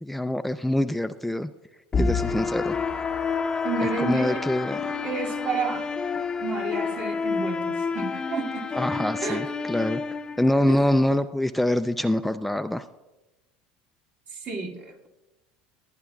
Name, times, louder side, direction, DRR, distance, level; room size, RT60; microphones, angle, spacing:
voice 1, 0.0-1.5 2.0-2.8 3.8-4.8 8.7-10.0 10.4-12.9, left 1 dB, 5° left, 9 dB, 0.4 m, -25 dB
sound 1, 1.9-10.9, left 5 dB, 25° left, 0.7 m, -29 dB
voice 2, 3.6-4.5 5.0-5.9 6.4-8.7 9.2-9.5 10.6-10.9 14.3-15.1, right 4 dB, 50° right, -1 dB, 2.5 m, -31 dB
21.0 x 9.7 x 2.4 m, 1.1 s
supercardioid pair, 95°, 3 cm